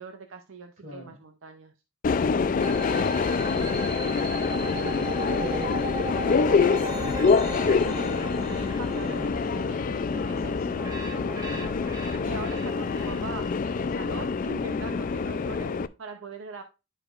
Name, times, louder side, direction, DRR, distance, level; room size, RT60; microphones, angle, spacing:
voice 1, 0.0-1.7 6.8-7.0 7.8-10.7 12.2-16.6, right 4 dB, 70° right, 0.6 m, -42 dB
voice 2, 0.8-1.2 3.3-5.8 6.2-7.0 9.0-9.3 11.1-11.7, left 1 dB, 40° right, 3.8 m, -40 dB
Subway metro underground, 2.0-15.9, left 5 dB, 40° left, 0.3 m, -26 dB
sound 1, 2.6-13.5, right 2 dB, 20° right, 0.9 m, -37 dB
11.0 x 4.9 x 2.4 m
head